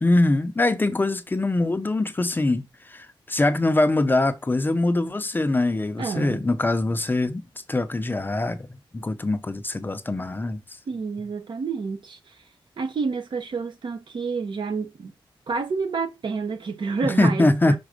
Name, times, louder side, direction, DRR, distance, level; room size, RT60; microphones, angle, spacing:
voice 1, 0.0-8.6 8.9-10.6 17.0-17.8, left 2 dB, 20° left, 0.6 m, -23 dB
voice 2, 6.0-6.4 10.9-12.3 12.8-15.1 15.5-17.8, right 4 dB, 65° right, 1.1 m, -29 dB
6.0 x 3.7 x 5.1 m
wide cardioid pair, 130°, 9 cm